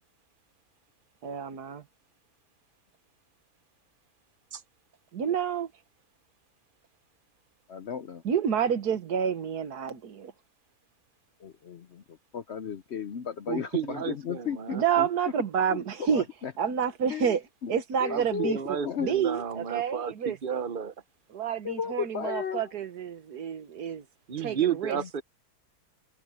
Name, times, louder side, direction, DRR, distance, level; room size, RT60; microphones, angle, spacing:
voice 1, 1.2-1.8 5.1-5.7 8.2-10.3 14.7-16.3 16.6-17.4 17.7-20.6 21.3-24.1 24.4-25.0, right 8 dB, 70° right, 1.8 m, -29 dB
voice 2, 7.7-8.2 11.4-15.1 15.7-15.8 16.1-16.5 17.1-17.3 17.6-17.7 18.0-18.6 18.8-19.1 21.6-22.7 25.0-25.1, left 7 dB, 55° left, 0.8 m, -34 dB
voice 3, 13.5-14.8 18.1-20.9 24.3-25.2, right 8 dB, 40° right, 0.8 m, -32 dB
omnidirectional pair, 1.7 m